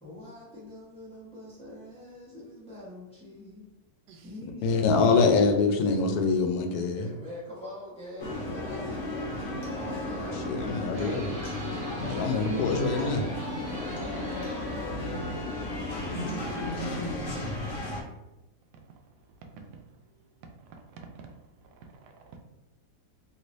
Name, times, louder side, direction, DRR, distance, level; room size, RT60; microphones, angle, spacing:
voice 1, 0.0-3.7 4.2-5.3 5.8-6.0 7.0-9.2 9.6-10.5, left 1 dB, 5° left, 0.9 m, -44 dB
voice 2, 4.6-7.1 10.3-11.3 12.0-13.2, left 4 dB, 70° left, 1.0 m, -25 dB
sound 1, 8.2-18.0, left 1 dB, 50° left, 0.6 m, -34 dB
sound 2, 10.9-15.4, right 1 dB, 55° right, 0.7 m, -44 dB
voice 3, 13.6-14.4 19.6-19.8 20.7-21.4 21.8-22.4, right 4 dB, 75° right, 1.1 m, -49 dB
3.1 x 3.0 x 2.6 m
omnidirectional pair, 1.9 m